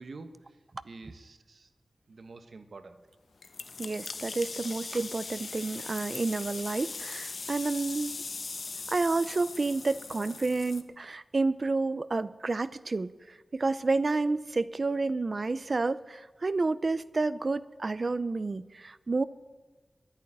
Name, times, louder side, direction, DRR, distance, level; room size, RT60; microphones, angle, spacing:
voice 1, 0.0-1.7 2.1-3.1, right 3 dB, 70° right, 9 dB, 1.0 m, -48 dB
sound 1, 3.4-10.8, left 4 dB, 65° left, 1.0 m, -40 dB
voice 2, 3.8-8.2 8.9-19.2, right 3 dB, 45° right, 16 dB, 0.6 m, -30 dB
11.0 x 10.0 x 10.0 m, 1.2 s
wide cardioid pair, 95°, 0 cm